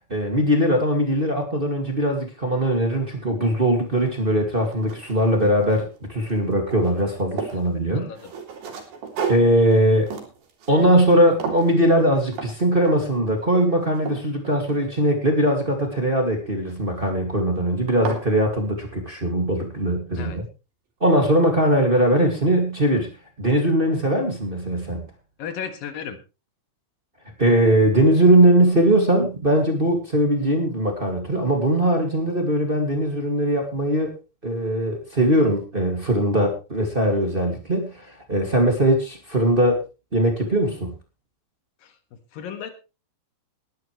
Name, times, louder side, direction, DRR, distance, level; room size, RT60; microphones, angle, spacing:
voice 1, 0.1-8.1 9.3-10.1 10.7-20.4 21.0-23.1 23.4-25.0 27.4-34.1 34.4-39.8 40.1-40.9, right 1 dB, 25° right, 2 dB, 1.1 m, -20 dB
sound 1, 4.0-4.1 4.5-6.0 6.3-7.6 8.2-11.2 11.4-11.8 12.3-12.5 12.9-13.2 13.6-15.2 16.7-17.1 17.6-17.7 17.9-18.3, right 6 dB, 60° right, 4.4 m, -33 dB
voice 2, 7.9-8.3 20.2-20.4 25.4-26.2 41.8-41.9 42.3-42.7, left 7 dB, 60° left, 8 dB, 2.9 m, -34 dB
19.5 x 11.0 x 3.2 m, 0.30 s
omnidirectional pair, 5.0 m